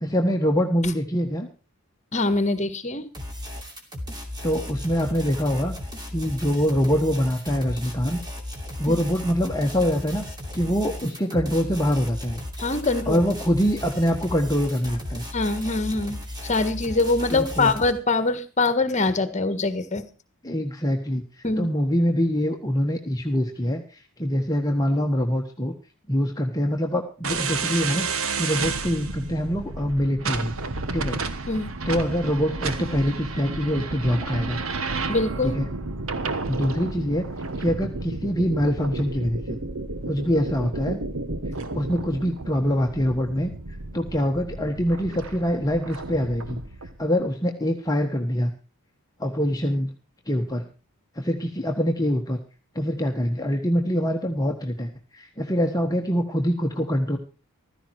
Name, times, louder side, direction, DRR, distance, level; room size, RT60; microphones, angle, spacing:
voice 1, 0.0-1.5 4.4-5.7 6.1-8.2 8.8-10.2 10.5-12.4 13.1-15.2 17.3-17.7 20.4-21.2 21.6-25.7 26.1-28.1 28.3-30.6 30.9-31.2 31.9-34.6 35.4-35.7 36.5-37.3 37.6-39.6 40.1-41.0 41.7-43.5 43.9-46.6 47.0-48.5 49.2-49.9 50.3-50.6 51.1-52.4 52.7-57.2, equal, 15° left, 2 dB, 1.3 m, -24 dB
voice 2, 2.1-3.1 8.9-9.0 12.6-13.2 15.3-20.0 21.4-21.7 31.5-31.7 35.1-35.6, left 3 dB, 30° left, 12 dB, 1.6 m, -24 dB
sound 1, 3.1-17.9, left 1 dB, 20° right, 2.8 m, -35 dB
sound 2, 27.2-46.9, right 3 dB, 65° right, 1.3 m, -32 dB
15.0 x 13.5 x 4.7 m, 0.34 s
head